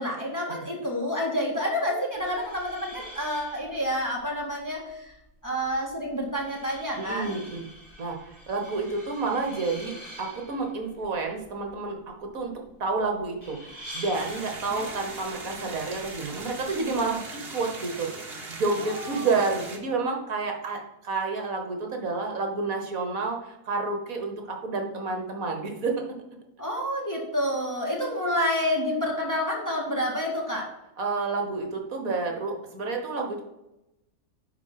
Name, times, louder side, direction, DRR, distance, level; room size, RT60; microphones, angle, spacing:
voice 1, 0.0-5.1 5.4-7.3 14.7-14.9 18.8-19.4 26.6-30.7, equal, 10° left, -2 dB, 1.8 m, -29 dB
sound 1, 2.1-17.1, equal, 10° right, 3.6 m, -47 dB
voice 2, 7.0-7.7 8.0-8.2 8.5-12.5 12.8-26.0 31.0-33.4, right 3 dB, 65° right, 3 dB, 1.7 m, -30 dB
sound 2, 14.1-19.8, right 3 dB, 40° right, 1.6 m, -40 dB
10.5 x 4.2 x 5.6 m, 0.93 s
omnidirectional pair, 1.6 m